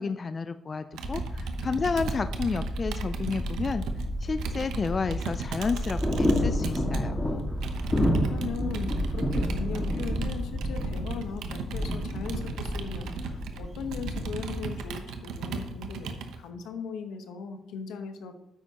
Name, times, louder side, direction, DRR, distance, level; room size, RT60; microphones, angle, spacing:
voice 1, 0.0-3.8 4.2-7.2, left 4 dB, 35° left, 11 dB, 0.4 m, -31 dB
Computer keyboard, 0.9-7.0 7.6-16.4, right 5 dB, 85° right, 0.8 m, -37 dB
sound 1, 1.0-11.2, equal, 5° right, 1.5 m, -34 dB
sound 2, 3.6-14.8, left 1 dB, 15° left, 1.7 m, -31 dB
voice 2, 8.2-18.4, left 6 dB, 85° left, 6 dB, 1.1 m, -39 dB
9.8 x 8.3 x 2.9 m, 0.87 s
cardioid pair, 90°, 0 cm